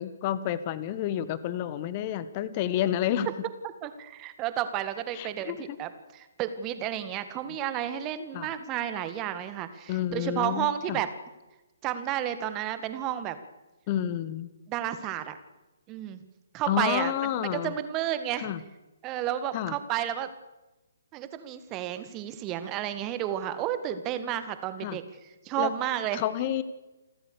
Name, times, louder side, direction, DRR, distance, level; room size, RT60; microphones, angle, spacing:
voice 1, 0.0-3.3 5.1-5.8 8.3-8.5 9.9-11.0 13.9-14.5 16.7-17.7 18.4-18.6 19.5-19.7 24.8-25.0 25.6-25.7 26.1-26.6, left 11 dB, 30° left, 15 dB, 1.4 m, -30 dB
voice 2, 3.8-11.1 11.8-13.4 14.7-15.4 15.9-16.2 16.5-17.1 17.5-18.5 19.0-20.3 21.1-25.0 25.4-26.2, right 11 dB, 25° right, 11 dB, 1.8 m, -31 dB
29.0 x 13.5 x 6.8 m, 1.1 s
figure-of-eight pair, 130°, 0 cm